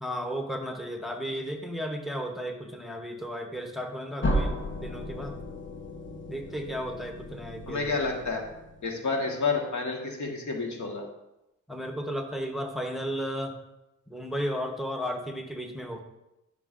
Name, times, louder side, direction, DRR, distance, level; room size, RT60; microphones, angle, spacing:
voice 1, 0.0-4.6 4.8-5.4 6.3-7.9 11.7-13.6 14.1-16.0, equal, ahead, 3 dB, 0.9 m, -34 dB
sound 1, 4.2-9.0, equal, 40° left, 1.0 m, -34 dB
voice 2, 7.7-8.4 8.8-11.0, left 4 dB, 70° left, 1 dB, 1.4 m, -29 dB
11.0 x 6.0 x 2.5 m, 0.92 s
cardioid pair, 85°, 30 cm